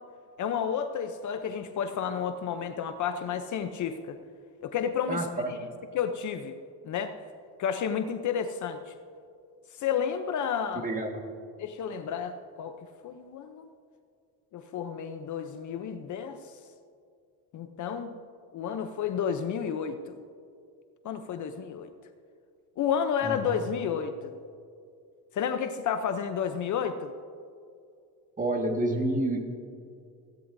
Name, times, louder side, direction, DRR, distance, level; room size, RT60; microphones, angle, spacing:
voice 1, 0.4-4.2 4.6-5.3 5.9-6.5 6.8-7.1 7.6-8.8 9.8-10.8 11.6-12.7 13.0-13.7 14.5-16.4 17.5-18.1 18.5-20.2 21.0-21.9 22.8-24.4 25.3-27.1, left 7 dB, 50° left, 8 dB, 0.7 m, -31 dB
voice 2, 5.1-5.6 10.8-11.2 23.2-23.4 28.4-29.5, right 1 dB, 20° right, 3 dB, 1.7 m, -29 dB
16.5 x 16.0 x 2.7 m, 2.4 s
cardioid pair, 125°, 38 cm